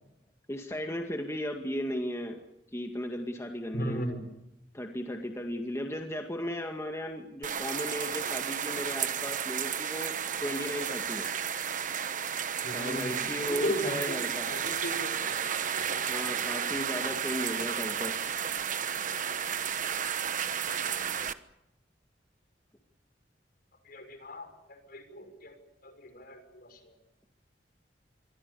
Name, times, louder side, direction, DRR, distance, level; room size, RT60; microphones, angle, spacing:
voice 1, 0.5-2.4 2.7-4.1 4.7-10.1 10.4-11.3 12.7-14.5 16.1-18.2, equal, 15° left, 3 dB, 2.0 m, -35 dB
voice 2, 3.7-4.2 12.6-14.2 14.5-15.4 17.4-17.5 23.9-24.5 24.9-25.5 25.8-26.7, equal, 55° left, 7 dB, 6.0 m, -37 dB
sound 1, 7.4-21.3, right 8 dB, 45° right, 1.2 m, -32 dB
26.5 x 23.0 x 7.0 m, 0.87 s
head